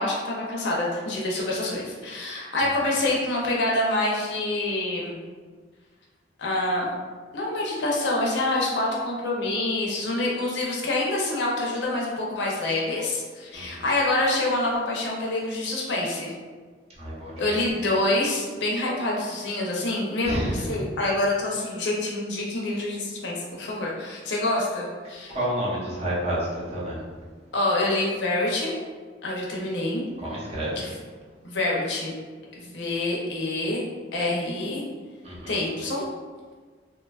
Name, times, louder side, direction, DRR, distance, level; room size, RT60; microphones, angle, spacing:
voice 1, 0.0-5.2 6.4-6.9 7.3-16.3 17.4-25.4 27.5-28.7 29.2-30.0 30.8-30.9 31.4-32.1 32.5-34.8 35.5-36.0, left 2 dB, 65° left, -3 dB, 0.6 m, -26 dB
voice 2, 17.0-17.6 20.2-20.6 25.3-27.0 30.2-30.8 35.2-35.6, right 1 dB, 35° right, -7 dB, 0.7 m, -30 dB
2.9 x 2.2 x 2.3 m, 1.5 s
head